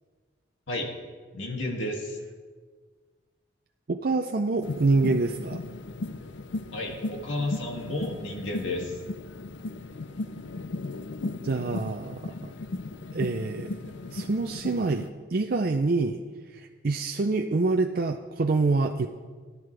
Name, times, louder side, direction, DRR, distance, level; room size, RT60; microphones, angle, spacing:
voice 1, 1.3-2.2 6.7-9.0, left 1 dB, 85° left, 0 dB, 2.4 m, -32 dB
voice 2, 3.9-5.6 11.4-12.5 13.1-13.7 14.1-16.2 16.5-19.1, right 3 dB, 50° right, 4 dB, 0.5 m, -26 dB
sound 1, 4.6-15.1, left 2 dB, 70° left, 0.6 m, -36 dB
17.5 x 10.5 x 3.4 m, 1.5 s
head